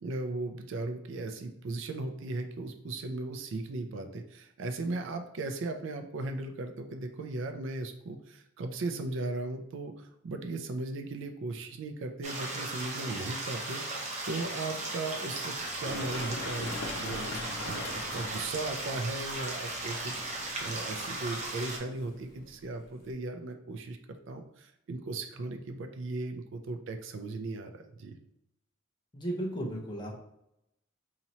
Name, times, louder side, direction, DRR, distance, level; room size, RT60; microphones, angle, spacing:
voice 1, 0.0-20.1 20.6-24.0 24.3-28.2, right 2 dB, 65° right, 7 dB, 0.4 m, -37 dB
sound 1, 12.2-21.8, right 2 dB, 35° right, 0.7 m, -37 dB
Run, 15.6-23.1, left 2 dB, 80° left, 0.5 m, -43 dB
voice 2, 29.1-30.1, right 1 dB, 20° left, -1 dB, 0.7 m, -34 dB
2.9 x 2.8 x 4.1 m, 0.81 s
head